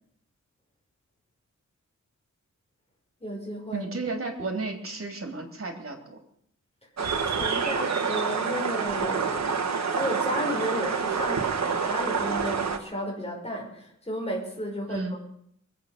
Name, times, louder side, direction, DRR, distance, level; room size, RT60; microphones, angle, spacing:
voice 1, 3.2-3.9 7.1-9.6 9.9-15.2, equal, 20° left, -1 dB, 5.7 m, -33 dB
voice 2, 3.7-6.2 14.9-15.2, right 3 dB, 50° right, 3 dB, 3.4 m, -33 dB
sound 1, 7.0-12.8, right 5 dB, 65° right, 1.5 m, -27 dB
23.5 x 8.6 x 6.8 m, 0.69 s
wide cardioid pair, 130°, 30 cm